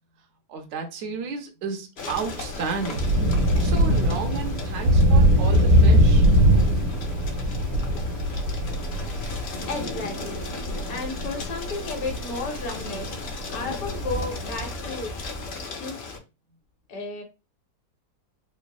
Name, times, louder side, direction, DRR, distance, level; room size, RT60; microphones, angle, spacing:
voice 1, 0.5-3.1 3.6-6.2, right 5 dB, 60° right, 0.8 m, -32 dB
sound 1, 2.0-16.2, left 4 dB, 90° left, 0.5 m, -38 dB
Thunder / Rain, 2.1-14.6, equal, 80° right, 1.3 m, -22 dB
Thunder, 9.5-15.6, equal, 45° left, 0.8 m, -38 dB
voice 2, 9.7-10.5 10.9-13.1 13.5-15.1 15.8-16.0 16.9-17.2, left 3 dB, 65° left, 1.3 m, -33 dB
3.3 x 2.0 x 2.2 m
omnidirectional pair, 1.8 m